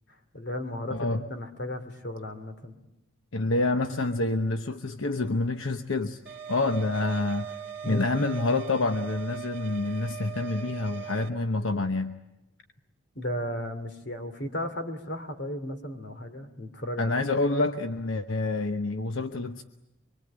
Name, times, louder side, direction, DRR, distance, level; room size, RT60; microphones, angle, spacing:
voice 1, 0.3-2.7 7.8-8.1 13.1-17.2, left 1 dB, 55° left, 8 dB, 2.8 m, -35 dB
voice 2, 0.9-1.2 3.3-6.2 6.5-7.5 7.8-12.2 17.0-19.6, left 2 dB, 80° left, 7 dB, 1.0 m, -27 dB
sound 1, 6.3-11.3, right 8 dB, 60° right, 1.8 m, -40 dB
25.0 x 24.5 x 8.9 m, 0.94 s
head